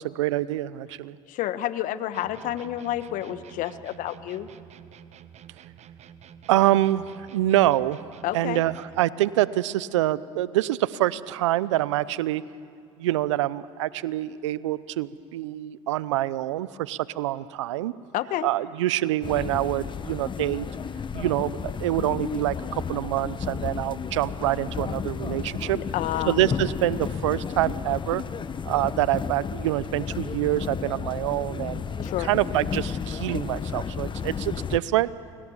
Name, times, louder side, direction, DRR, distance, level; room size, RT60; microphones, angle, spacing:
voice 1, 0.0-1.2 6.5-8.1 8.3-12.4 13.0-17.9 18.4-20.7 21.1-25.8 26.3-28.2 28.6-35.1, right 15 dB, 85° right, 19 dB, 0.7 m, -26 dB
voice 2, 1.3-4.5 8.2-8.6 18.1-18.5 25.7-26.4 32.0-32.3, left 13 dB, 60° left, 12 dB, 1.4 m, -29 dB
sound 1, 2.1-9.1, right 9 dB, 50° right, 1.3 m, -48 dB
sound 2, 19.2-34.8, left 6 dB, 30° left, 1.1 m, -32 dB
29.5 x 22.5 x 7.3 m, 2.4 s
hypercardioid pair, 75°, 15 cm